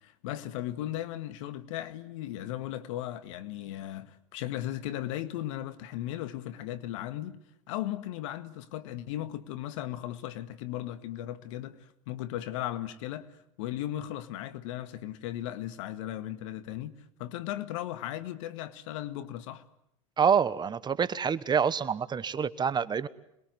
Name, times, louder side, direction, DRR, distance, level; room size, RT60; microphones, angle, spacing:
voice 1, 0.0-7.4 7.7-19.7, left 13 dB, 70° left, 1.9 m, -37 dB
voice 2, 20.2-23.1, right 7 dB, 25° right, 1.2 m, -27 dB
27.0 x 21.5 x 9.5 m
hypercardioid pair, 90°, 17 cm